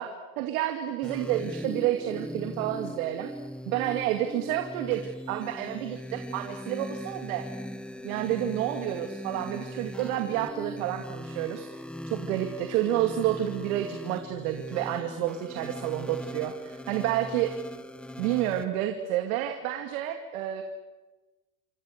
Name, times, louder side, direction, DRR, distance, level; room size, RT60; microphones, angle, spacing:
voice 1, 0.0-3.3 3.7-7.5 8.0-11.7 12.1-17.5 18.2-20.6, right 12 dB, 80° right, 5 dB, 2.4 m, -30 dB
sound 1, 1.0-18.6, equal, ahead, 1.0 m, -39 dB
27.5 x 25.5 x 6.7 m, 1.2 s
supercardioid pair, 145°, 42 cm